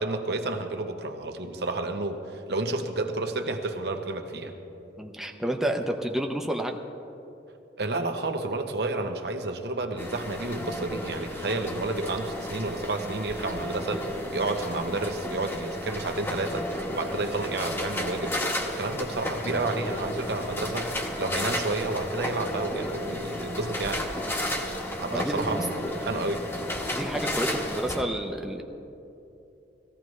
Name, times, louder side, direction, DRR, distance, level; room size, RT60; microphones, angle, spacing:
voice 1, 0.0-4.5 7.8-18.4 18.7-24.3 25.0-26.4, right 2 dB, 65° right, 6 dB, 0.9 m, -31 dB
voice 2, 5.0-6.8 25.1-25.6 26.9-28.6, right 1 dB, ahead, 2 dB, 0.6 m, -30 dB
sound 1, 10.0-28.0, left 1 dB, 15° left, 1.1 m, -33 dB
18.5 x 15.0 x 3.2 m, 2.8 s
head